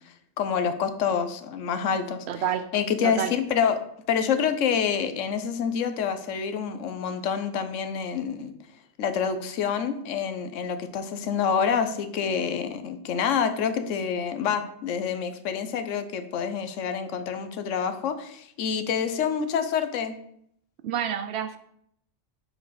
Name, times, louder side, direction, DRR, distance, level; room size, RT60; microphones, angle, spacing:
voice 1, 0.4-2.3 2.7-3.8 4.1-8.5 9.0-20.2, left 7 dB, 85° left, 9 dB, 1.0 m, -27 dB
voice 2, 2.3-2.7 3.0-3.3 20.8-21.6, right 9 dB, 65° right, 9 dB, 0.8 m, -28 dB
7.1 x 4.4 x 4.0 m, 0.70 s
omnidirectional pair, 1.3 m